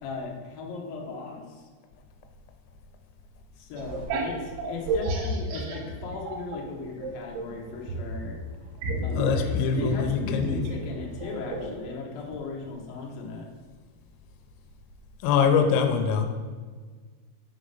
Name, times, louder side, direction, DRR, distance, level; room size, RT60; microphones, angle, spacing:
voice 1, 0.0-1.7 3.6-8.4 9.0-13.5, left 4 dB, 70° left, -1 dB, 2.2 m, -37 dB
sound 1, 3.8-6.6 7.0-11.8, right 2 dB, 80° right, 2.4 m, -31 dB
voice 2, 9.1-10.6 15.2-16.3, left 7 dB, 90° left, 6 dB, 3.3 m, -23 dB
7.5 x 5.0 x 5.3 m, 1.5 s
omnidirectional pair, 5.9 m